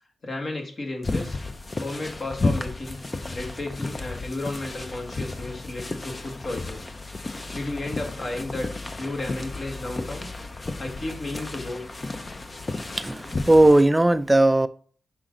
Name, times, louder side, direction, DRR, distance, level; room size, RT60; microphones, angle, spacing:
voice 1, 0.2-1.4 1.8-3.0 3.3-6.9 7.5-8.7 9.0-10.3 10.8-11.8, left 2 dB, 45° left, 2 dB, 1.6 m, -33 dB
sound 1, 1.0-13.8, left 2 dB, 30° left, 0.7 m, -33 dB
voice 2, 13.0-14.7, right 1 dB, 15° right, 12 dB, 0.4 m, -17 dB
5.9 x 5.0 x 3.8 m, 0.43 s
wide cardioid pair, 105°, 0 cm